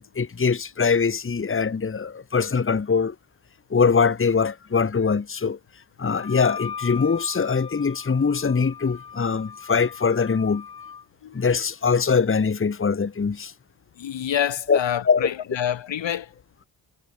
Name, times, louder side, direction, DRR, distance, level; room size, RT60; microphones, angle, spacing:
voice 1, 0.1-3.1 3.7-5.6 6.0-10.6 11.3-13.5 14.7-14.8 15.0-15.3, left 5 dB, 25° left, 1.2 m, -22 dB
Wind instrument woodwind instrument, 6.1-11.0, left 6 dB, 50° left, 2.7 m, -39 dB
voice 2, 14.0-16.3, left 10 dB, 65° left, 1.2 m, -27 dB
cardioid pair, 75°, 47 cm